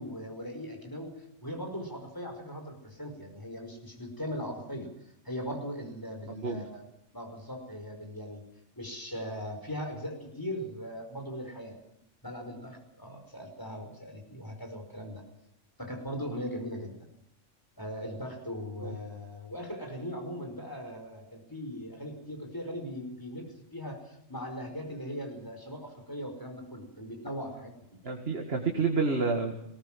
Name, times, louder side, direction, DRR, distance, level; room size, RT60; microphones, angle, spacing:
voice 1, 0.0-4.9 5.3-6.9 7.1-8.4 8.8-11.8 12.2-15.2 15.8-16.9 17.8-27.7, equal, 15° left, 3 dB, 5.4 m, -39 dB
voice 2, 28.0-29.5, right 4 dB, 55° right, 3 dB, 2.2 m, -29 dB
20.0 x 18.5 x 7.5 m, 0.82 s
omnidirectional pair, 1.3 m